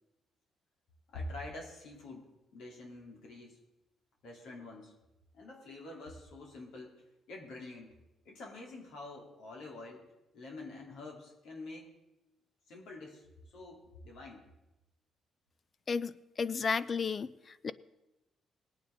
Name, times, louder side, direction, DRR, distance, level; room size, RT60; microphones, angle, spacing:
voice 1, 1.1-3.6 4.2-4.9 5.3-7.0 7.3-7.9 8.2-10.1 10.3-11.9 12.7-13.3 13.5-14.5, left 2 dB, 85° left, -1 dB, 3.0 m, -46 dB
voice 2, 15.9-17.7, left 5 dB, 40° left, 16 dB, 0.5 m, -33 dB
20.5 x 9.1 x 3.9 m, 0.96 s
cardioid pair, 90°, 0 cm